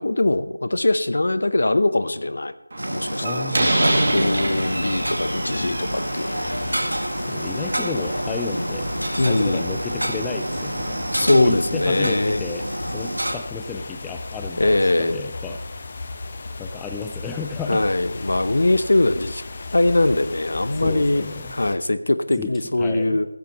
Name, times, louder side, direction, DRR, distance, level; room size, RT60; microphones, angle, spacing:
voice 1, 0.0-2.5 2.9-6.5 8.5-8.6 9.2-9.6 11.1-12.4 14.6-15.2 17.7-19.4 19.7-21.2 21.5-23.3, left 2 dB, 55° left, 13 dB, 0.8 m, -21 dB
Slam, 2.7-11.3, right 2 dB, 45° right, 2.4 m, -28 dB
sound 1, 2.8-13.4, equal, 85° right, 1.7 m, -29 dB
voice 2, 3.2-3.7 7.2-8.9 9.2-11.0 11.3-12.6 12.9-15.6 16.6-17.8 20.8-21.5 22.4-22.5 22.8-23.2, left 5 dB, 5° left, 5 dB, 0.4 m, -32 dB
sound 2, 3.9-21.8, left 3 dB, 30° left, 1.0 m, -36 dB
15.5 x 12.0 x 3.1 m, 0.87 s
figure-of-eight pair, 165°, 0 cm